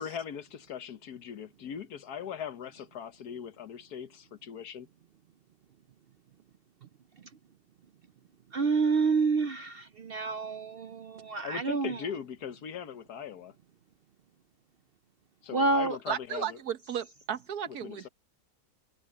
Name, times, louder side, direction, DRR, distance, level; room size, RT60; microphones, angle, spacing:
voice 1, 0.0-4.9 11.4-13.5 15.5-16.6 17.7-18.1, left 8 dB, 85° left, 1.6 m, -40 dB
voice 2, 8.5-12.0 15.5-16.0, right 4 dB, 60° right, 0.6 m, -28 dB
voice 3, 16.1-18.1, right 9 dB, 80° right, 1.6 m, -34 dB
omnidirectional pair, 1.6 m